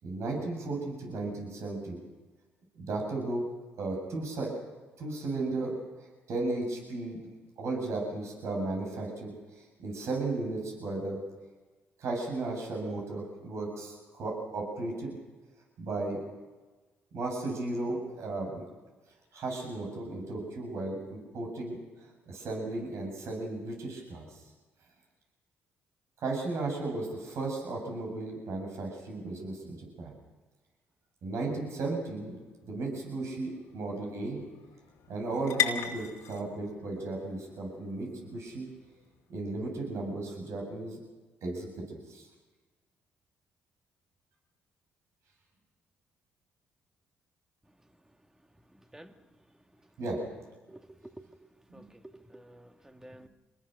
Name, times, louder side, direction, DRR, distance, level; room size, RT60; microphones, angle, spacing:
voice 1, 0.0-2.0 2.7-3.4 3.8-4.5 5.0-5.8 6.3-7.2 7.6-11.2 12.0-15.2 15.8-16.2 17.1-18.6 19.3-21.8 22.3-24.4 26.2-30.1 31.2-34.4 35.1-38.7 39.3-41.0 41.4-42.3 50.0-50.2, right 2 dB, 65° right, 0 dB, 8.0 m, -35 dB
sound 1, 32.0-39.8, left 10 dB, 80° left, 2.6 m, -39 dB
voice 2, 51.7-53.3, right 1 dB, 10° right, 7 dB, 1.9 m, -50 dB
26.5 x 20.5 x 6.6 m, 1.3 s
supercardioid pair, 65°, 5 cm